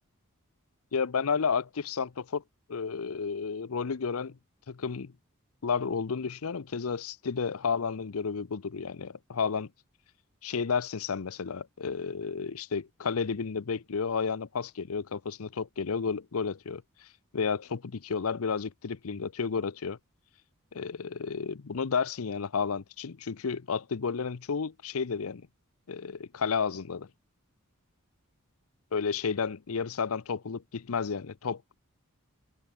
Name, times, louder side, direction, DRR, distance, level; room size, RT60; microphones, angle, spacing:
voice 1, 0.9-2.4 2.7-4.4 4.7-5.1 5.6-9.7 10.4-17.1 17.3-20.0 20.7-25.5 25.9-27.1 28.9-31.7, left 5 dB, 75° left, 0.7 m, -32 dB
head